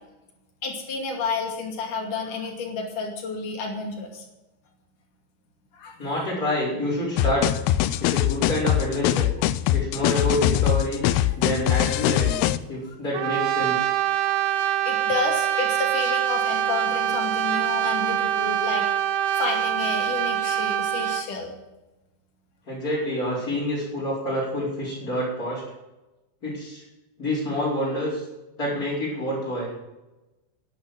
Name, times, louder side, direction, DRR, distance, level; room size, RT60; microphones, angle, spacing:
voice 1, 0.6-4.3 5.7-6.2 11.3-11.4 12.2-12.3 14.3-18.9 19.4-21.5, left 4 dB, 55° left, 1 dB, 3.8 m, -31 dB
voice 2, 6.0-7.5 8.0-9.3 9.7-11.0 11.4-12.4 12.7-13.9 22.7-25.6 26.4-26.8 27.2-28.2 28.6-29.7, left 1 dB, 20° left, -9 dB, 5.2 m, -27 dB
sound 1, 7.2-12.6, left 13 dB, 85° left, 2.5 m, -22 dB
Brass instrument, 13.1-21.3, right 11 dB, 85° right, 1.8 m, -24 dB
11.5 x 10.5 x 7.7 m, 1.0 s
omnidirectional pair, 4.4 m